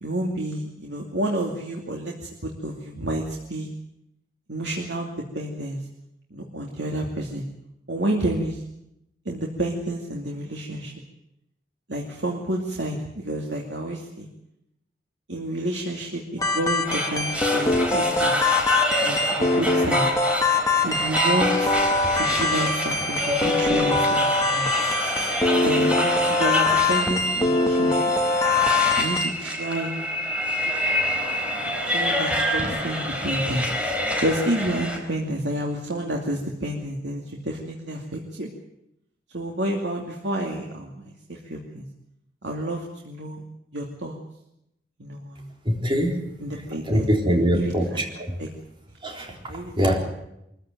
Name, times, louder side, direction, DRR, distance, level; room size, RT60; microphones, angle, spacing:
voice 1, 0.0-3.7 4.5-5.1 5.3-5.8 6.3-7.4 7.9-8.6 9.3-10.9 11.9-14.3 15.3-18.3 19.0-20.1 20.8-21.7 22.1-24.7 25.5-28.0 29.0-29.9 30.5-30.7 31.5-33.7 34.2-38.5 39.3-41.8 42.4-43.4 43.7-44.1 45.0-45.5 46.4-48.0 48.4-48.5 49.5-49.7, right 1 dB, 85° right, -1 dB, 2.6 m, -30 dB
sound 1, 16.4-29.3, left 3 dB, 20° left, 2.2 m, -23 dB
sound 2, 16.8-35.0, equal, 5° right, 4.1 m, -27 dB
voice 2, 45.7-46.2 46.9-48.4 49.0-50.0, equal, 30° right, 1 dB, 3.9 m, -23 dB
23.0 x 15.0 x 9.2 m, 0.84 s
head